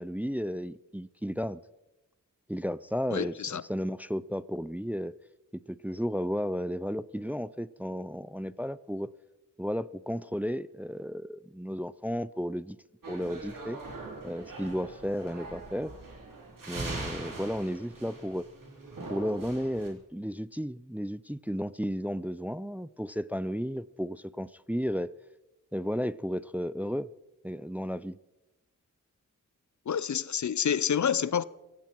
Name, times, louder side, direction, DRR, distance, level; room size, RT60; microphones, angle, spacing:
voice 1, 0.0-1.6 2.5-5.1 5.5-9.1 9.6-12.8 13.1-13.8 14.2-15.9 16.7-18.5 19.1-25.1 25.7-27.1 27.4-28.2, equal, 5° right, 0.4 m, -33 dB
voice 2, 3.1-3.6 29.9-31.4, left 8 dB, 65° left, 0.6 m, -28 dB
sound 1, 13.0-19.9, right 2 dB, 80° right, 3.8 m, -42 dB
17.5 x 16.0 x 4.6 m
wide cardioid pair, 60°, 32 cm